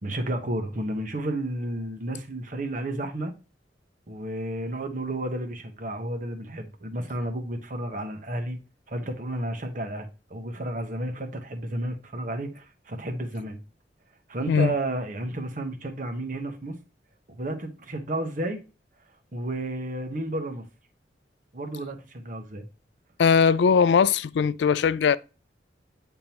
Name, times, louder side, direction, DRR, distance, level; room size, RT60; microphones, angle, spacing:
voice 1, 0.0-3.3 4.1-8.6 8.9-13.6 14.3-16.8 17.3-18.6 19.3-20.6 21.5-22.6, right 1 dB, 50° right, 1.1 m, -32 dB
voice 2, 23.2-25.2, left 6 dB, 75° left, 0.3 m, -20 dB
8.6 x 3.7 x 2.9 m
head